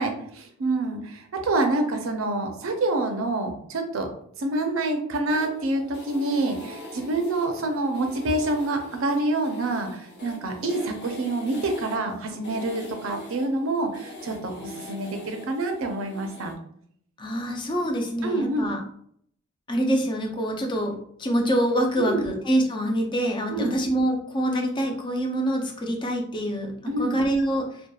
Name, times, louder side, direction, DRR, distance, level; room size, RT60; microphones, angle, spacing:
voice 1, 0.0-4.1 4.4-16.5 18.2-18.7 22.0-22.3 23.5-23.8 26.9-27.1, right 2 dB, 85° right, 5 dB, 0.5 m, -27 dB
sound 1, 5.3-16.5, left 1 dB, 55° left, 0.7 m, -42 dB
voice 2, 17.2-18.8 19.7-27.8, right 1 dB, 25° left, 2 dB, 0.4 m, -25 dB
2.8 x 2.2 x 2.3 m, 0.65 s
head